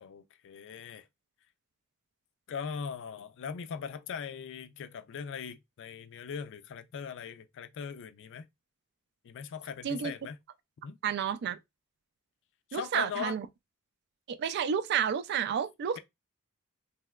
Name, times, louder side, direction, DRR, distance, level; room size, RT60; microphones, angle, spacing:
voice 1, 0.0-1.1 2.5-8.5 9.2-10.4 10.8-11.0 12.7-13.4, left 6 dB, 55° left, 0.4 m, -40 dB
voice 2, 11.0-11.6 12.7-13.5 14.3-16.0, right 8 dB, 50° right, 0.3 m, -30 dB
3.2 x 2.8 x 2.3 m
head